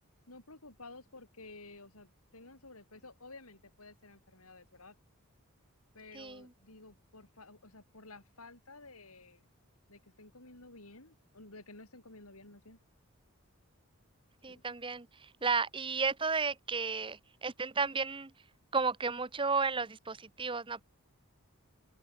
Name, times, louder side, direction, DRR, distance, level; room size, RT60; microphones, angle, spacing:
voice 1, 0.3-5.0 5.9-9.4 9.9-12.8 14.5-14.6, left 2 dB, 90° left, 6.6 m, -53 dB
voice 2, 6.1-6.5 14.4-18.3 18.7-20.8, right 4 dB, 25° right, 1.0 m, -33 dB
open air
head